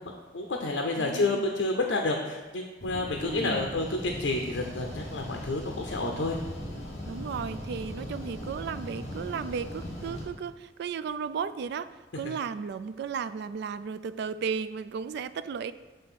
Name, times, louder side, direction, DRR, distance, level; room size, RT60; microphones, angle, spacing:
voice 1, 0.3-6.4, left 2 dB, 70° left, 2 dB, 0.6 m, -29 dB
voice 2, 1.0-1.5 3.2-3.7 7.1-15.7, right 6 dB, 60° right, 14 dB, 0.3 m, -35 dB
sound 1, 2.8-10.2, left 1 dB, 40° left, 2.0 m, -39 dB
7.8 x 3.4 x 5.8 m, 1.2 s
head